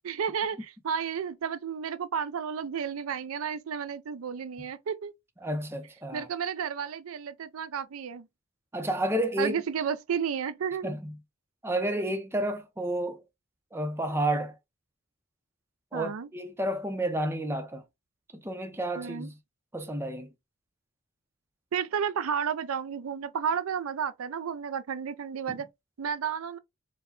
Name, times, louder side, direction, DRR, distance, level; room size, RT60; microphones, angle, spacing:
voice 1, 0.0-5.1 6.1-8.3 9.4-10.9 15.9-16.3 19.0-19.3 21.7-25.7 26.0-26.6, right 7 dB, 90° right, 0.5 m, -32 dB
voice 2, 5.4-6.3 8.7-9.6 10.8-11.1 11.6-13.2 13.7-14.5 15.9-17.8 18.3-19.3 19.7-20.3 25.5-25.6, right 1 dB, 10° right, 0.6 m, -30 dB
4.6 x 2.2 x 3.8 m
head